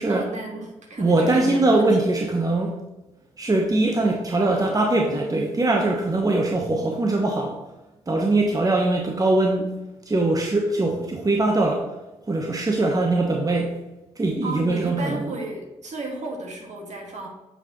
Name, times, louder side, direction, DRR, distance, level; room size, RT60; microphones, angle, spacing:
voice 1, 0.1-2.1 14.4-17.3, right 2 dB, 50° right, 0 dB, 1.8 m, -33 dB
voice 2, 1.0-2.8 3.4-7.6 8.1-9.7 10.1-11.9 12.2-13.8 14.2-15.2, right 2 dB, 25° right, 1 dB, 1.0 m, -22 dB
7.7 x 4.8 x 3.0 m, 1.0 s
hypercardioid pair, 40°, 15 cm